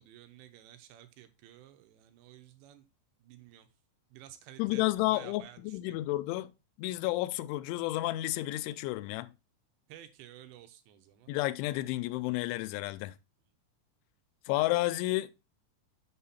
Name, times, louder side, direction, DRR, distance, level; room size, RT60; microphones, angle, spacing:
voice 1, 0.0-2.9 3.2-3.7 4.1-5.9 9.9-11.3, right 12 dB, 80° right, 3.0 m, -53 dB
voice 2, 4.6-6.5 6.8-9.3 11.3-13.2 14.5-15.3, left 18 dB, 90° left, 2.9 m, -31 dB
6.8 x 5.6 x 4.1 m
omnidirectional pair, 5.2 m